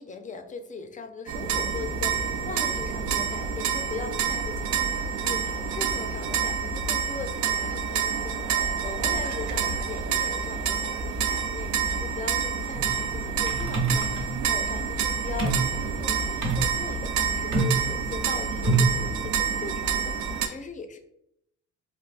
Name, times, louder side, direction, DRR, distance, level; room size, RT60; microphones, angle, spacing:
voice 1, 0.0-21.0, left 5 dB, 25° left, 7 dB, 0.4 m, -39 dB
sound 1, 1.3-20.5, right 7 dB, 70° right, 0.4 m, -28 dB
sound 2, 12.7-19.1, right 3 dB, 40° right, 0.9 m, -28 dB
3.2 x 2.5 x 2.4 m, 0.78 s
cardioid pair, 90°, 30 cm